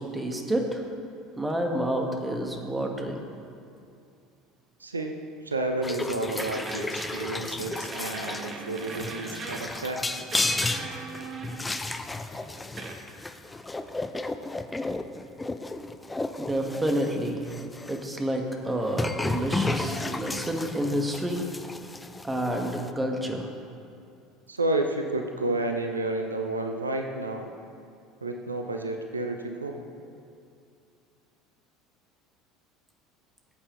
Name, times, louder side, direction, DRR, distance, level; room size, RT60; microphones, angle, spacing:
voice 1, 0.1-0.8 1.4-3.2 16.4-17.5 17.9-21.5 22.2-23.5, right 1 dB, 10° right, 2 dB, 1.7 m, -29 dB
voice 2, 4.8-5.2 5.4-10.0 24.5-27.5 28.2-29.8, right 2 dB, 85° right, 4 dB, 0.7 m, -31 dB
sound 1, 5.5-5.6 6.4-7.5 7.7-9.9 10.3-11.9 12.8-12.9, right 4 dB, 35° right, 1.3 m, -39 dB
sound 2, 5.8-18.0 18.9-22.9, left 2 dB, 15° left, 0.6 m, -33 dB
19.0 x 8.3 x 3.2 m, 2.5 s
figure-of-eight pair, 70°, 0 cm